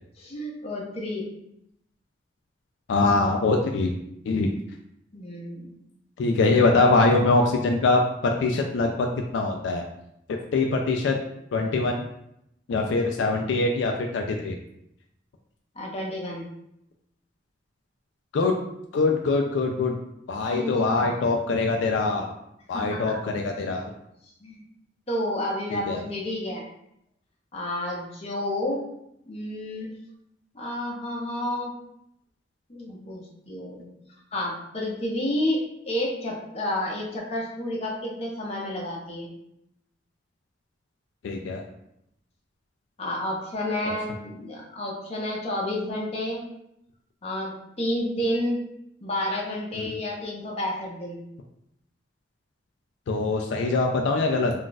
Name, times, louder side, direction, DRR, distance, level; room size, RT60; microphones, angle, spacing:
voice 1, 0.2-1.3 5.1-5.7 15.8-16.5 20.5-21.3 22.7-23.1 24.4-24.6 25.1-26.6 27.5-28.8 29.3-29.9 30.5-31.7 32.7-33.9 34.3-39.3 43.0-46.5 47.2-48.6 49.0-51.2, left 1 dB, 35° left, -2 dB, 0.7 m, -30 dB
voice 2, 2.9-4.0 4.3-4.5 6.2-9.1 9.3-9.8 10.5-11.2 11.5-12.0 12.7-14.6 18.3-18.6 18.9-20.0 20.3-22.3 22.7-23.9 25.7-26.0 41.2-41.6 49.7-49.9 53.1-54.5, left 3 dB, 75° left, 2 dB, 0.3 m, -23 dB
2.4 x 2.3 x 3.8 m, 0.79 s
head